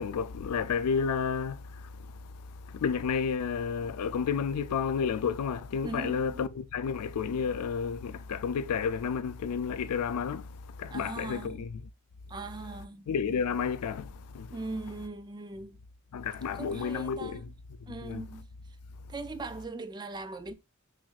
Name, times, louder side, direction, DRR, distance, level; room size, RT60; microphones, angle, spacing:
voice 1, 0.0-11.9 13.1-14.6 16.1-17.5 17.8-18.3, left 6 dB, 90° left, 0.4 m, -31 dB
voice 2, 5.8-6.4 10.9-11.7 12.3-13.1 14.5-15.8 16.5-17.4 17.9-18.4 19.1-20.5, right 3 dB, 20° right, 0.3 m, -40 dB
6.0 x 2.6 x 2.3 m
head